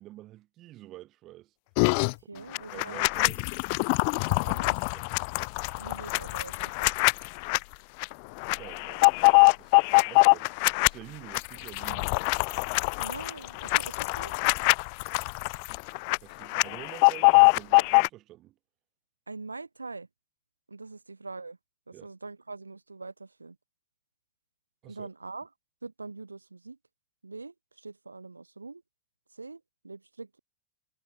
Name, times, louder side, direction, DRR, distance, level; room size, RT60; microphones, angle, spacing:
voice 1, 0.0-1.5 2.3-3.4 4.1-4.6 4.9-5.1 5.8-6.0 8.6-12.2 15.1-15.3 16.2-18.6 21.9-22.1 24.8-25.1, right 15 dB, 35° right, 6.9 m, -48 dB
sound 1, 1.8-2.1 2.5-7.6 8.0-8.1 8.4-10.9 11.3-16.2 16.4-18.1, left 36 dB, 45° left, 0.4 m, -23 dB
voice 2, 2.3-3.3 4.4-4.7 5.8-7.0 13.0-14.3 19.3-20.1 20.7-21.6 21.9-23.6 24.8-25.5 25.8-26.8 27.2-28.8 29.3-30.4, right 3 dB, 80° right, 3.4 m, -43 dB
figure-of-eight pair, 90°, 0 cm